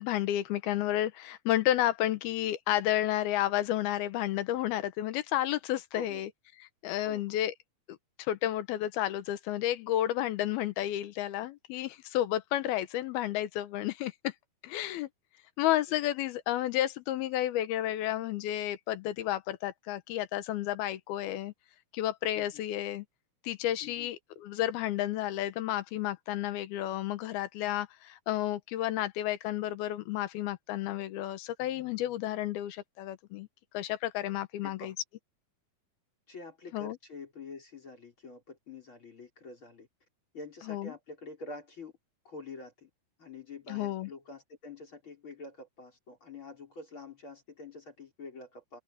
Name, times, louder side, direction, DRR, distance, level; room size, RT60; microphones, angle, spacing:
voice 1, 0.0-6.3 6.8-7.5 7.9-14.3 14.6-15.1 15.6-21.5 21.9-23.0 23.4-33.5 33.7-34.9 36.7-37.0 40.7-40.9 43.7-44.1, left 13 dB, 85° left, 2.9 m, -31 dB
voice 2, 5.9-6.2 7.0-7.4 15.9-16.0 22.4-22.6 23.8-24.1 34.6-34.9 36.3-39.9 40.3-41.9 42.3-42.9 43.2-48.8, left 3 dB, 30° left, 5.4 m, -47 dB
open air
omnidirectional pair, 4.3 m